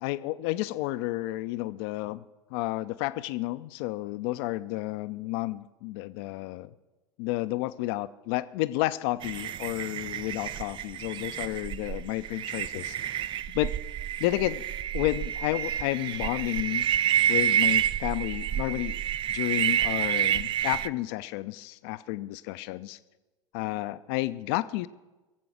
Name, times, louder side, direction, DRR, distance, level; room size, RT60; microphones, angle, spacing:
voice 1, 0.0-2.2 2.5-6.7 7.2-13.2 13.5-13.7 14.2-14.6 14.9-16.8 17.3-19.0 19.3-23.0 23.5-24.9, left 17 dB, 50° left, 14 dB, 0.6 m, -31 dB
sound 1, 9.2-20.9, right 10 dB, 30° right, 0.4 m, -29 dB
22.5 x 7.8 x 6.2 m, 1.1 s
figure-of-eight pair, 75°, 16 cm